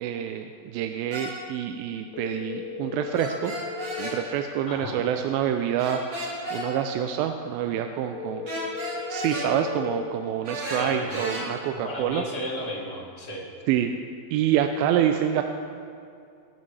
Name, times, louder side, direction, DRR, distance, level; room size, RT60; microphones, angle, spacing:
voice 1, 0.0-3.5 4.0-6.0 6.5-8.8 9.1-12.2 13.7-13.9 14.3-15.4, right 10 dB, 85° right, 6 dB, 2.3 m, -27 dB
sound 1, 1.1-1.3 3.1-4.2 5.8-6.6 8.5-9.5 10.4-11.4, right 1 dB, 50° right, 4.5 m, -33 dB
sound 2, 2.1-4.1 8.1-10.1, left 7 dB, 75° left, 2.3 m, -36 dB
voice 2, 4.7-5.0 10.6-11.2 11.8-13.4, left 1 dB, 35° left, -4 dB, 1.1 m, -34 dB
18.5 x 8.2 x 3.3 m, 2.5 s
omnidirectional pair, 4.1 m